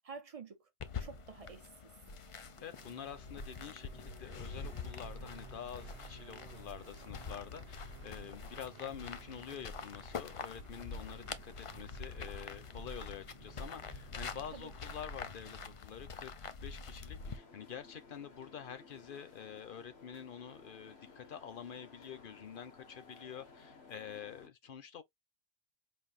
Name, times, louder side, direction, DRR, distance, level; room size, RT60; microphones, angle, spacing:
voice 1, 0.0-1.9 14.5-14.7, right 5 dB, 40° right, 0.6 m, -50 dB
sound 1, 0.8-17.4, left 4 dB, 45° left, 0.5 m, -45 dB
voice 2, 2.4-25.0, left 8 dB, 60° left, 0.9 m, -47 dB
sound 2, 2.5-15.9, right 11 dB, 85° right, 0.8 m, -58 dB
sound 3, 17.2-24.5, left 4 dB, 90° left, 1.4 m, -57 dB
5.4 x 2.6 x 2.5 m
omnidirectional pair, 1.0 m